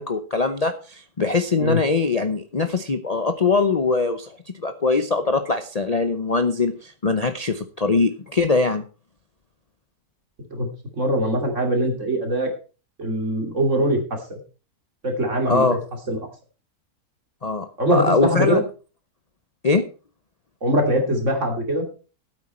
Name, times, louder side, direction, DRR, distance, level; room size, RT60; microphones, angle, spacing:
voice 1, 0.0-8.8 15.5-15.8 17.4-18.6 19.6-19.8, left 4 dB, 35° left, 7 dB, 0.7 m, -22 dB
voice 2, 11.0-12.5 13.0-14.0 14.3-14.4 15.0-15.8 16.1-16.2 17.8-18.6 20.6-21.8, equal, 55° right, 2 dB, 3.1 m, -22 dB
12.5 x 8.8 x 4.4 m, 0.35 s
omnidirectional pair, 1.6 m